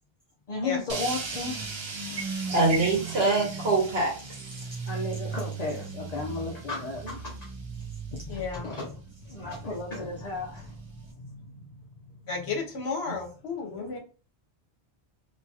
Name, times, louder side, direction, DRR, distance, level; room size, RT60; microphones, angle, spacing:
voice 1, 0.5-1.5 2.4-2.6 4.6-7.3 8.1-9.0 9.2-12.5, left 3 dB, 45° left, 0.7 m, -35 dB
sound 1, 0.9-11.1, right 4 dB, 50° right, 0.3 m, -37 dB
voice 2, 2.5-4.1 7.0-7.1 13.7-14.0, right 3 dB, 65° right, 1.3 m, -24 dB
voice 3, 8.3-8.7 12.3-14.0, left 4 dB, 70° left, 1.1 m, -32 dB
2.9 x 2.8 x 2.3 m
omnidirectional pair, 1.1 m